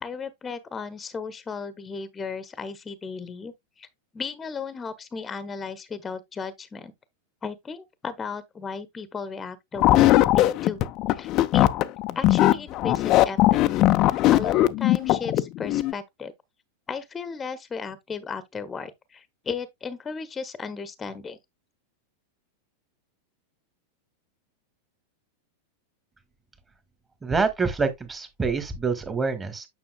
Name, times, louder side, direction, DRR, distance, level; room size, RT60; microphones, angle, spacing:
voice 1, 0.0-3.9 4.1-6.9 7.4-10.8 11.1-11.7 12.1-13.6 14.3-16.3 16.9-21.4, left 5 dB, 20° left, 1.0 m, -35 dB
sound 1, 9.8-15.9, left 15 dB, 35° left, 0.6 m, -20 dB
voice 2, 27.2-29.7, right 4 dB, 15° right, 1.7 m, -26 dB
9.5 x 5.7 x 2.3 m
figure-of-eight pair, 90°, 0 cm